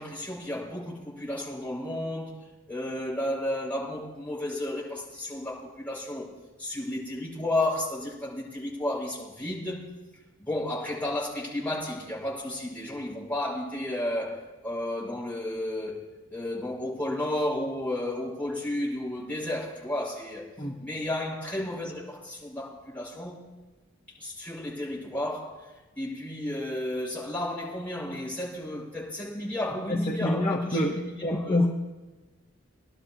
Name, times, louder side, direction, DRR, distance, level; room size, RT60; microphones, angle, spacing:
voice 1, 0.0-2.4 2.7-6.3 6.6-9.9 10.4-20.5 20.8-23.4 24.2-31.6, left 1 dB, 5° left, 5.9 m, -33 dB
voice 2, 29.9-31.7, left 1 dB, 30° left, 1.2 m, -26 dB
23.0 x 11.5 x 3.0 m
head